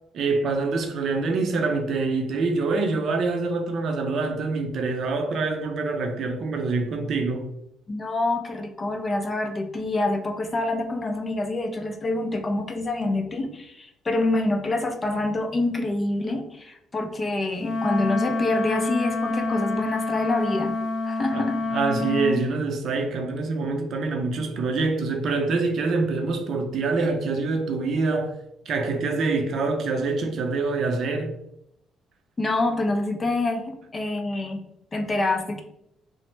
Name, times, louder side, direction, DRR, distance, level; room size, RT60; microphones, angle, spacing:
voice 1, 0.1-7.5 21.3-28.3 28.7-31.3, right 3 dB, 60° right, 0.5 m, -25 dB
voice 2, 7.9-20.8 21.0-21.6 32.4-34.6 34.9-35.6, left 2 dB, 25° left, 0.4 m, -26 dB
Wind instrument woodwind instrument, 17.6-22.4, left 3 dB, 70° left, 0.9 m, -27 dB
3.0 x 2.0 x 3.2 m
cardioid pair, 105°, 0 cm